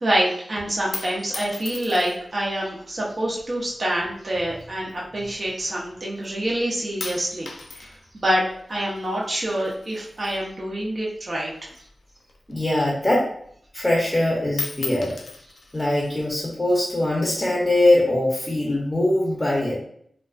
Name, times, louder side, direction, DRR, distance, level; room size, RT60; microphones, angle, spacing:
voice 1, 0.0-7.5 7.7-11.5, right 1 dB, 45° right, -4 dB, 0.5 m, -26 dB
sound 1, 0.7-2.4 3.2-3.7 4.5-5.9 6.2-6.6 7.0-11.1 11.3-13.0 13.4-13.5 13.8-14.2 14.5-16.3 17.1-17.7, left 4 dB, 75° left, 0.3 m, -38 dB
voice 2, 12.5-13.3 13.7-15.2 15.7-19.8, left 1 dB, 25° left, -4 dB, 0.6 m, -22 dB
2.3 x 2.3 x 2.4 m, 0.65 s
wide cardioid pair, 70°, 0 cm